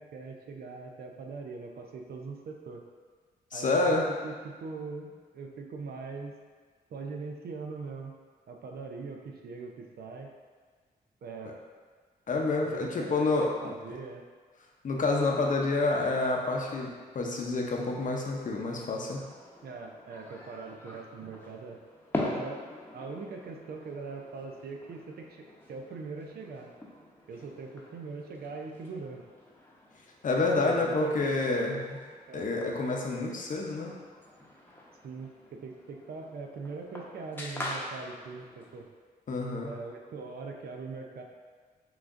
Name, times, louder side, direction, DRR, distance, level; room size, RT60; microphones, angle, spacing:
voice 1, 0.0-2.8 3.5-6.4 6.9-8.1 8.5-10.3 11.2-11.5 12.6-14.2 16.0-16.1 19.6-21.8 22.1-22.6 22.9-26.7 27.3-29.2 30.5-31.4 32.3-32.5 35.0-38.9 39.6-41.2, right 4 dB, 70° right, 2 dB, 0.5 m, -41 dB
voice 2, 3.5-4.0 12.3-13.5 14.8-19.2 30.2-32.0 32.3-33.9 39.3-39.7, left 3 dB, 50° left, 0 dB, 0.7 m, -28 dB
sound 1, 19.1-38.8, left 1 dB, 10° left, 0.8 m, -43 dB
5.9 x 2.5 x 2.5 m, 1.5 s
cardioid pair, 65°, 17 cm